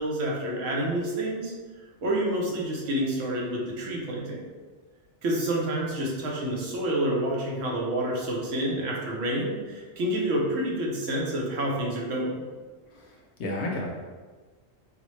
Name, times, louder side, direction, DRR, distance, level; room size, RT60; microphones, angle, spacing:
voice 1, 0.0-1.5 2.0-4.4 5.2-12.4, right 1 dB, 75° right, -2 dB, 1.1 m, -28 dB
voice 2, 12.9-13.9, left 1 dB, 65° left, -1 dB, 0.8 m, -32 dB
4.0 x 2.2 x 3.1 m, 1.4 s
omnidirectional pair, 1.4 m